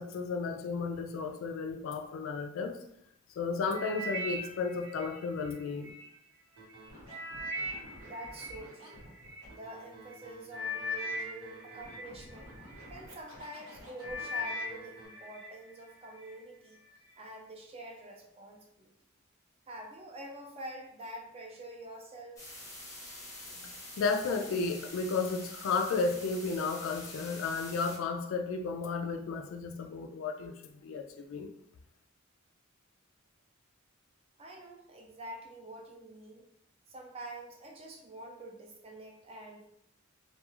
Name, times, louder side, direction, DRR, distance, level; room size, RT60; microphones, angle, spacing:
voice 1, 0.0-2.8 3.4-5.9 23.6-23.7 24.0-31.5, left 4 dB, 65° left, 0.3 m, -33 dB
sound 1, 3.7-6.0 6.6-9.4 10.1-10.2 10.5-12.9 13.4-13.7 14.0-15.5 15.9-16.3 16.9-17.0, left 1 dB, 65° right, 0.8 m, -39 dB
Scratching (performance technique), 6.6-15.1, right 1 dB, 85° right, 1.1 m, -52 dB
voice 2, 8.0-9.0 9.5-12.5 12.9-16.8 17.2-18.9 19.7-22.4 34.4-36.5 36.9-39.7, right 1 dB, 30° right, 0.4 m, -46 dB
sound 2, 22.4-28.0, left 1 dB, 15° left, 0.7 m, -46 dB
2.3 x 2.3 x 2.9 m
head